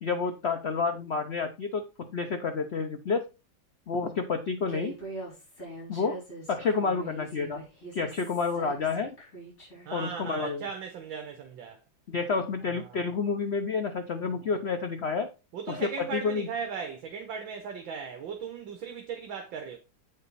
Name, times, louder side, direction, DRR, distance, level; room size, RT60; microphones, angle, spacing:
voice 1, 0.0-3.2 3.9-5.0 5.9-6.2 6.5-7.6 7.9-9.1 9.9-10.6 12.1-15.3 15.7-16.5, left 4 dB, 85° left, 0.5 m, -29 dB
Human voice, 4.7-9.9, right 2 dB, 40° left, 4.7 m, -43 dB
voice 2, 9.8-11.8 12.7-13.0 15.5-19.8, right 6 dB, 75° right, 1.8 m, -37 dB
8.2 x 5.1 x 4.0 m
omnidirectional pair, 2.2 m